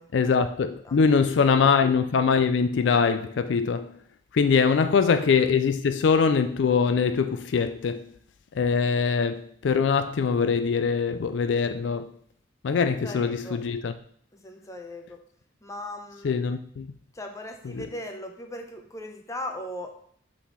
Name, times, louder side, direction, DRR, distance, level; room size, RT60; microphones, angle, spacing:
voice 1, 0.1-3.9 4.3-8.1 8.5-12.1 12.6-13.9 16.2-16.9 17.7-17.9, left 5 dB, 70° left, 0.4 m, -23 dB
voice 2, 0.6-1.6 12.8-13.6 14.3-15.2 15.6-16.3 17.1-19.9, left 1 dB, 15° left, 0.8 m, -39 dB
5.8 x 4.2 x 5.6 m
head